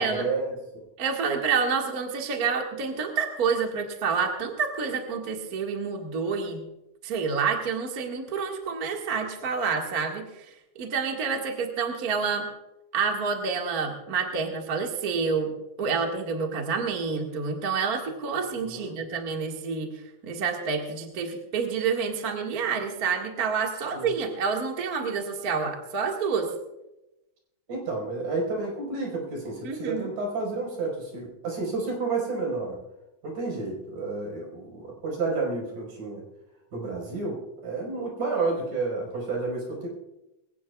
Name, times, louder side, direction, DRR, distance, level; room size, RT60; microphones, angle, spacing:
voice 1, 0.0-0.8 18.7-18.9 23.9-24.1 27.7-32.8 33.2-36.2 36.7-39.9, right 3 dB, 70° right, -2 dB, 6.4 m, -30 dB
voice 2, 1.0-6.6 7.0-12.5 12.9-19.9 20.2-26.5 29.6-30.1, right 5 dB, 35° right, 1 dB, 1.7 m, -28 dB
21.5 x 17.5 x 2.4 m, 0.93 s
omnidirectional pair, 3.8 m